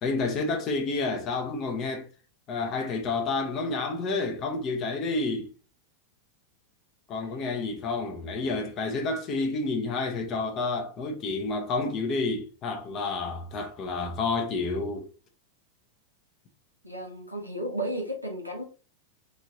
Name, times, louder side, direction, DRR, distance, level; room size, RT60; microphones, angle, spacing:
voice 1, 0.0-2.1 2.5-5.5 7.1-15.1, left 3 dB, 35° left, 0.7 m, -29 dB
voice 2, 16.8-18.6, right 1 dB, 90° left, 0.9 m, -33 dB
3.0 x 2.7 x 2.6 m
figure-of-eight pair, 90°, 0 cm